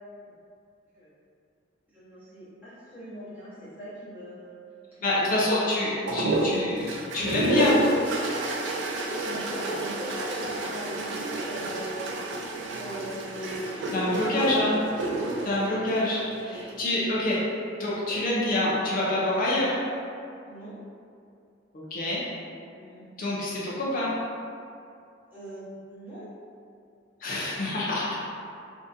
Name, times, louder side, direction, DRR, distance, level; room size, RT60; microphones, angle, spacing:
voice 1, 1.9-4.6 4.9-5.3 5.8-6.4 8.9-12.0 12.7-14.8 15.1-15.7 16.4-16.6 20.5-20.7 22.7-23.1 25.3-26.2, equal, 10° right, -12 dB, 1.1 m, -40 dB
voice 2, 5.0-6.9 7.1-7.8 13.9-14.7 15.4-17.4 17.8-19.8 21.7-22.2 23.2-24.1 27.2-28.1, left 1 dB, 50° left, -6 dB, 0.5 m, -26 dB
sound 1, 6.1-16.7 17.9-18.5, right 2 dB, 70° right, 0.4 m, -30 dB
3.7 x 2.5 x 2.6 m, 2.4 s
head